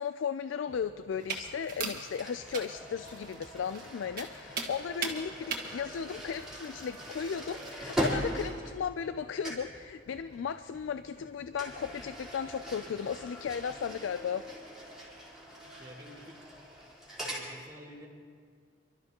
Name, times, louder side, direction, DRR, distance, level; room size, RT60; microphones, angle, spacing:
voice 1, 0.0-14.4, left 7 dB, 80° left, 12 dB, 0.3 m, -35 dB
sound 1, 0.7-13.9, left 1 dB, 35° left, 1.4 m, -57 dB
sound 2, 1.2-7.8, right 5 dB, 50° right, 1.6 m, -41 dB
sound 3, 2.2-9.2 9.4-9.8 11.5-17.5, equal, 5° right, 3.7 m, -40 dB
voice 2, 15.8-16.5 17.2-18.1, equal, 20° right, -4 dB, 1.9 m, -49 dB
29.5 x 12.5 x 2.9 m, 2.1 s
head